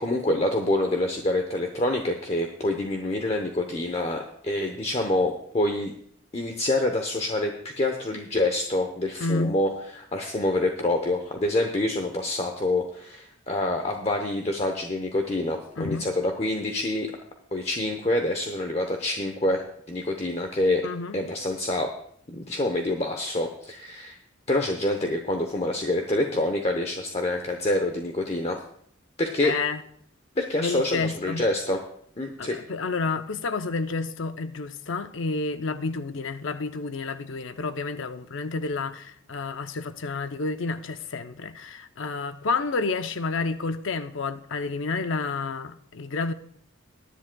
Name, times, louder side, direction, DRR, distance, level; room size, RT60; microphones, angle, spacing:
voice 1, 0.0-5.9 6.3-17.1 17.5-20.8 21.1-21.9 22.3-24.2 24.5-28.6 29.2-29.5 30.4-31.8 32.2-32.6, left 1 dB, 30° left, 0.8 m, -26 dB
voice 2, 9.2-9.6 15.8-16.1 20.8-21.2 29.4-29.8 30.6-31.4 32.4-46.3, left 3 dB, 70° left, 0.6 m, -30 dB
21.0 x 10.0 x 2.3 m
head